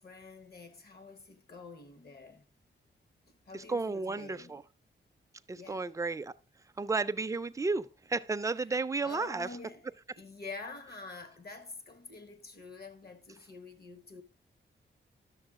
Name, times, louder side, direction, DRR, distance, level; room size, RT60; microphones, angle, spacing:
voice 1, 0.0-2.4 3.5-4.6 5.6-5.8 9.0-9.8 10.2-14.2, left 3 dB, 55° left, 1.2 m, -47 dB
voice 2, 3.5-4.6 5.5-6.3 6.8-9.5, right 3 dB, 15° right, 0.4 m, -33 dB
11.5 x 6.8 x 3.6 m
wide cardioid pair, 130°, 20 cm